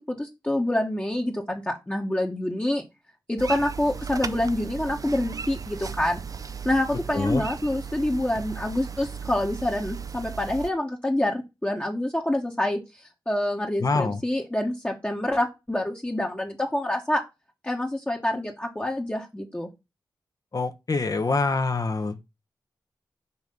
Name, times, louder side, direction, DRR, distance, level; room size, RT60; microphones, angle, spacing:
voice 1, 0.1-2.8 3.3-6.2 6.6-12.8 13.3-17.2 17.6-19.7, left 1 dB, 15° left, 1.1 m, -27 dB
sound 1, 3.4-10.7, right 6 dB, 45° right, 0.5 m, -36 dB
voice 2, 13.8-14.2 20.5-22.2, left 3 dB, 45° left, 0.9 m, -25 dB
5.6 x 3.1 x 5.4 m
cardioid pair, 45°, 8 cm